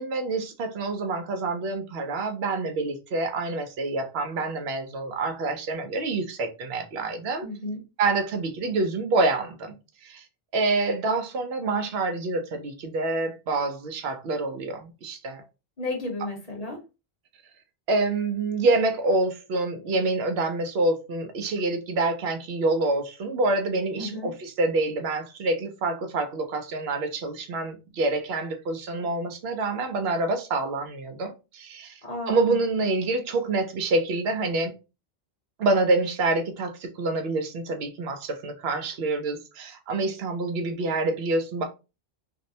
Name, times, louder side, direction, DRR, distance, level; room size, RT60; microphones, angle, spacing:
voice 1, 0.0-7.5 8.0-9.7 10.0-10.2 10.5-15.4 17.9-31.9 32.3-34.7 35.6-41.6, right 2 dB, 80° right, 0.8 m, -27 dB
voice 2, 7.4-7.8 15.8-16.8 23.9-24.3 32.0-32.6, left 2 dB, 45° left, 0.7 m, -33 dB
2.6 x 2.0 x 2.6 m
omnidirectional pair, 1.1 m